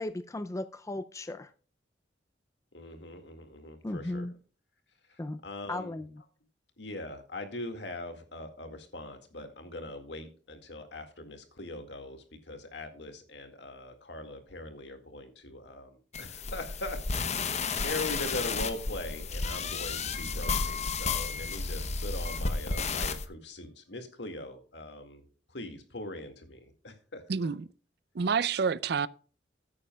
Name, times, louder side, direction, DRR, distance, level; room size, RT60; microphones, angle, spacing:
voice 1, 0.0-1.5 3.8-4.3 5.2-5.4 5.7-6.2, left 2 dB, 15° left, 0.4 m, -36 dB
voice 2, 2.7-4.3 5.1-6.0 6.8-17.3 17.8-27.2, left 2 dB, 70° left, 2.0 m, -41 dB
sound 1, 16.1-23.2, left 4 dB, 40° left, 0.9 m, -32 dB
voice 3, 27.3-27.7 28.1-29.1, right 5 dB, 60° right, 0.5 m, -28 dB
16.0 x 8.6 x 2.3 m
head